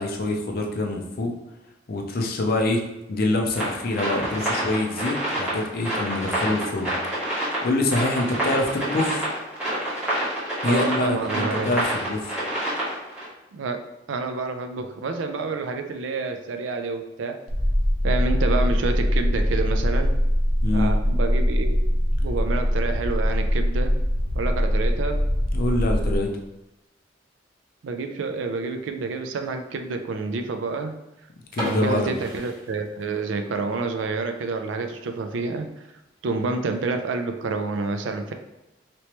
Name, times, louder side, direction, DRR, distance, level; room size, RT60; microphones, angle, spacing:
voice 1, 0.0-1.3 1.9-2.8 3.1-6.9 7.6-9.3 10.6-12.4 20.6-21.0 25.5-26.3 31.5-32.2, left 2 dB, 50° left, 2 dB, 0.5 m, -25 dB
sound 1, 3.5-13.3, right 1 dB, 5° right, 1.4 m, -27 dB
voice 2, 10.7-11.7 13.5-17.4 18.0-20.1 20.7-21.8 22.2-23.9 24.3-25.2 27.8-30.9 31.6-35.7 36.2-38.3, right 3 dB, 85° right, 6 dB, 0.4 m, -28 dB
sound 2, 17.5-26.2, equal, 35° left, 1.0 m, -22 dB
sound 3, 31.5-33.4 33.7-33.8 34.3-34.5 34.9-35.0 35.3-35.4 36.1-36.4, equal, 50° right, 1.5 m, -35 dB
3.1 x 2.9 x 2.9 m, 0.94 s
head